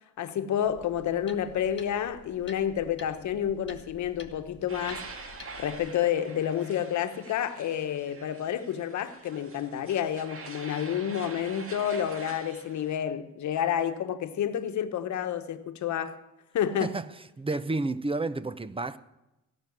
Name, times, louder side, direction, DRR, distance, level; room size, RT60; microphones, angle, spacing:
voice 1, 0.2-5.1 5.6-16.2 16.5-17.0, left 9 dB, 70° left, 1.2 m, -29 dB
sound 1, 0.6-5.9, left 5 dB, 40° left, 1.6 m, -50 dB
sound 2, 4.7-13.0, right 4 dB, 45° right, 1.8 m, -45 dB
voice 2, 17.4-19.0, right 2 dB, 20° right, 0.7 m, -30 dB
16.5 x 6.1 x 9.3 m
cardioid pair, 90°, 30 cm